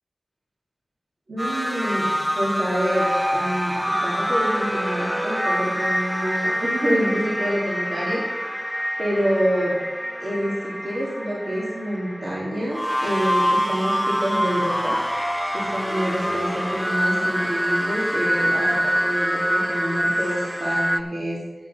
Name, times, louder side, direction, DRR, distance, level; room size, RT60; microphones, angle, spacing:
voice 1, 1.3-2.1 2.3-3.1 3.3-8.2 9.0-9.7 10.2-15.0 15.5-21.4, equal, 70° right, -6 dB, 2.6 m, -27 dB
sound 1, 1.4-21.0, equal, ahead, 0.6 m, -25 dB
8.8 x 7.8 x 5.7 m, 1.2 s
cardioid pair, 40°, 0 cm